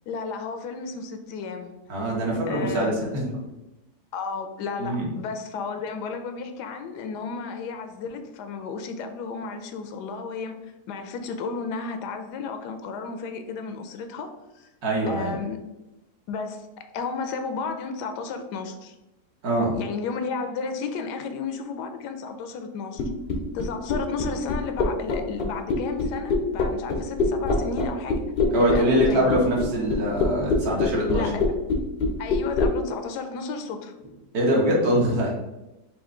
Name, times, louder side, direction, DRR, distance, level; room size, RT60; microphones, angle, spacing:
voice 1, 0.1-1.7 2.5-3.0 4.1-10.6 10.9-14.7 15.1-15.6 16.3-18.9 19.7-23.0 23.5-28.2 28.7-29.3 31.1-31.4 32.2-33.9, left 5 dB, 80° left, 7 dB, 1.1 m, -33 dB
voice 2, 1.9-3.4 4.8-5.1 14.8-15.3 19.4-19.7 28.5-31.3 34.3-35.3, right 1 dB, 65° right, -3 dB, 1.7 m, -23 dB
sound 1, 23.0-32.7, left 3 dB, 60° left, 0.6 m, -23 dB
5.4 x 2.5 x 3.7 m, 0.99 s
omnidirectional pair, 1.7 m